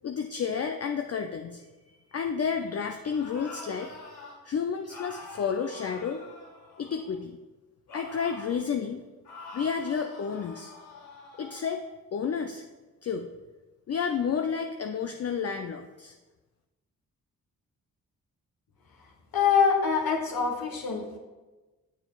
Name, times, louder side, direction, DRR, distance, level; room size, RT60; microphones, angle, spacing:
voice 1, 0.0-3.9 4.4-6.2 6.8-7.4 7.9-9.0 9.5-10.7 11.4-11.8 12.1-12.6 13.0-13.3 13.9-16.1, left 6 dB, 40° left, 5 dB, 0.5 m, -31 dB
sound 1, 3.0-4.4 4.9-7.2 7.9-8.6 9.2-11.7, left 2 dB, 85° left, 1.6 m, -46 dB
voice 2, 19.3-21.2, left 6 dB, 65° left, 1 dB, 1.3 m, -24 dB
7.0 x 6.5 x 2.4 m, 1.2 s
supercardioid pair, 40°, 38 cm